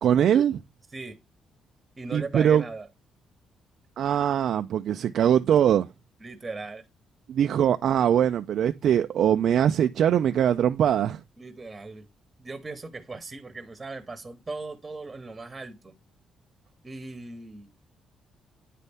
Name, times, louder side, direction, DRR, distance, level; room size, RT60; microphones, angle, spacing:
voice 1, 0.0-0.6 2.1-2.6 4.0-5.9 7.3-11.2, right 9 dB, 70° right, 0.3 m, -22 dB
voice 2, 2.0-2.9 6.2-6.8 11.4-12.1 12.4-15.9 16.8-17.7, right 3 dB, 25° right, 0.9 m, -38 dB
9.1 x 4.1 x 3.4 m
cardioid pair, 90°, 0 cm